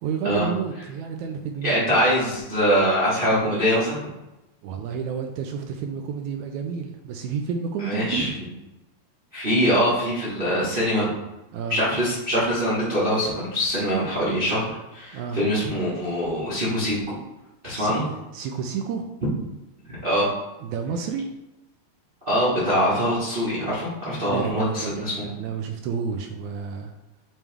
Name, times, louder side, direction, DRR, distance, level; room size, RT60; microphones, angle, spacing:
voice 1, 0.0-1.9 4.6-8.2 11.5-11.8 15.1-15.4 17.7-19.1 20.6-21.3 24.2-26.9, right 6 dB, 80° right, 4 dB, 1.7 m, -30 dB
voice 2, 1.6-4.0 7.8-8.3 9.3-11.1 11.7-17.1 17.6-18.0 20.0-20.3 22.2-25.3, equal, 40° right, -9 dB, 0.8 m, -23 dB
8.7 x 3.1 x 3.5 m, 0.99 s
omnidirectional pair, 3.7 m